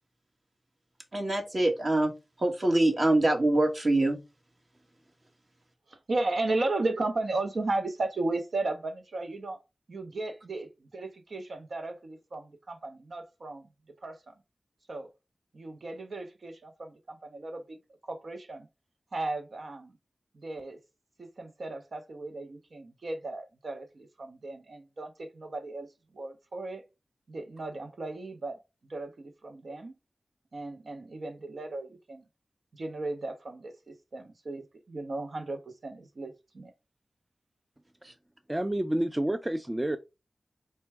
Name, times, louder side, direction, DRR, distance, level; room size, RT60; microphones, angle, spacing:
voice 1, 1.1-2.1 2.4-4.2 38.0-38.1, right 1 dB, 50° right, 1.3 m, -24 dB
voice 2, 5.9-9.6 9.9-13.7 14.0-14.3 14.9-15.1 15.5-17.8 18.0-18.7 19.1-19.9 20.3-20.8 21.2-25.9 26.1-26.8 27.3-28.6 28.9-29.9 30.5-32.2 32.7-36.7, right 2 dB, 75° right, 0.7 m, -35 dB
voice 3, 38.5-40.0, right 1 dB, 20° right, 0.4 m, -29 dB
4.4 x 2.2 x 4.5 m
wide cardioid pair, 55°, 0 cm